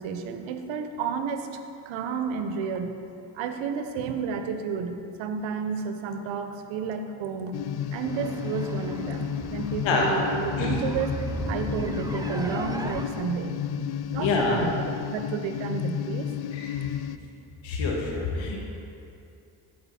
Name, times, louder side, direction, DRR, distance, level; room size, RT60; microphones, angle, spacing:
voice 1, 0.0-1.6 1.9-3.0 3.3-7.5 7.9-11.2 11.5-13.5 14.1-16.3, right 6 dB, 80° right, 7 dB, 0.8 m, -31 dB
sound 1, 7.5-17.2, left 9 dB, 60° left, 0.5 m, -32 dB
sound 2, 8.0-13.0, right 1 dB, 10° right, 0.6 m, -36 dB
voice 2, 14.2-14.6 16.5-16.8 17.6-18.6, left 4 dB, 80° left, -1 dB, 1.6 m, -26 dB
13.0 x 5.1 x 4.1 m, 2.6 s
supercardioid pair, 60°, 46 cm